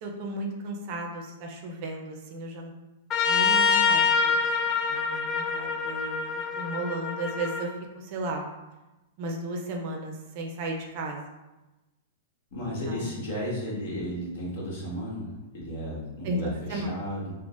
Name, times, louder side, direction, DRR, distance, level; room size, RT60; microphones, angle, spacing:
voice 1, 0.0-2.7 3.2-4.4 4.9-6.2 6.6-8.4 9.2-11.2 12.6-13.0 16.2-16.4 16.7-16.9, right 2 dB, 45° right, 2 dB, 0.5 m, -34 dB
Trumpet, 3.1-7.6, left 5 dB, 25° left, 0.3 m, -25 dB
voice 2, 12.5-17.3, equal, 60° left, -5 dB, 1.3 m, -34 dB
3.8 x 2.1 x 2.4 m, 1.0 s
hypercardioid pair, 155°, 0 cm